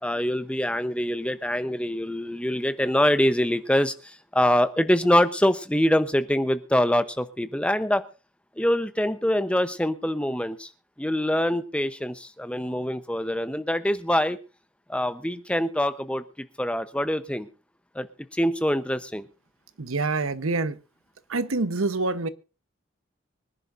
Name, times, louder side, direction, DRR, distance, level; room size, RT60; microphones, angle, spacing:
voice 1, 0.0-8.0 8.6-10.7 11.0-14.4 14.9-17.5 17.9-18.1 18.3-19.3, equal, 5° left, 0.7 m, -24 dB
voice 2, 19.8-20.8 21.3-22.3, right 3 dB, 85° right, 0.9 m, -26 dB
25.0 x 10.5 x 2.6 m
head